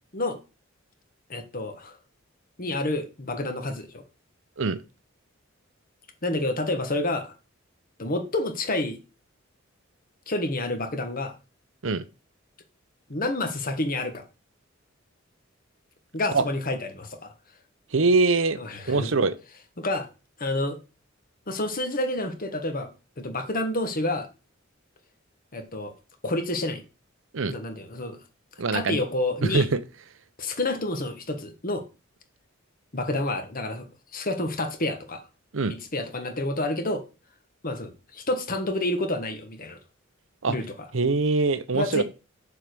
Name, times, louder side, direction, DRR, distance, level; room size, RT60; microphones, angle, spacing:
voice 1, 1.3-2.0 2.6-4.0 6.2-7.3 8.0-9.0 10.3-11.3 13.1-14.2 16.1-17.3 18.6-19.2 19.8-20.1 20.4-20.8 21.5-22.9 23.2-24.3 25.5-25.9 26.2-26.8 27.5-28.2 28.7-29.7 30.4-31.8 32.9-33.9 34.1-35.2 35.7-37.0 37.6-39.8 40.5-40.7 41.7-42.0, left 2 dB, 45° left, 1.5 m, -29 dB
voice 2, 17.9-18.6 18.9-19.3 27.3-27.5 28.6-29.0 29.5-29.7 35.5-35.7 40.4-40.5 40.9-42.0, right 3 dB, 70° right, 0.8 m, -23 dB
6.9 x 4.8 x 6.8 m
head